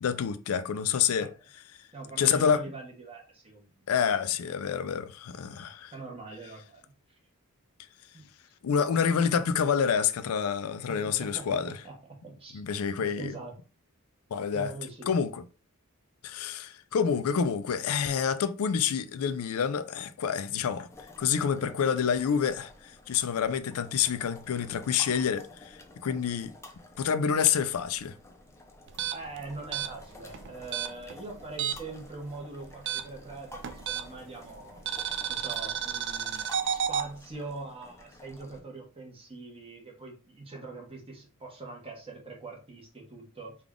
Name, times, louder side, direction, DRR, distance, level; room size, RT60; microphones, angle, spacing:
voice 1, 0.0-1.3 2.2-2.6 3.9-5.9 8.6-11.8 12.5-13.3 14.3-14.7 15.1-15.4 16.2-20.9 21.2-26.5 27.0-28.1, left 7 dB, 80° left, 0.4 m, -28 dB
voice 2, 1.9-4.3 5.9-6.8 8.1-8.3 10.9-12.6 13.0-13.5 14.5-15.1 29.1-34.8 35.3-43.6, right 3 dB, 25° right, 1.0 m, -43 dB
sound 1, 20.9-38.6, left 2 dB, 15° left, 0.5 m, -51 dB
sound 2, 28.9-32.0 32.3-34.3 34.9-37.1, right 8 dB, 55° right, 0.4 m, -32 dB
3.5 x 2.3 x 3.6 m
head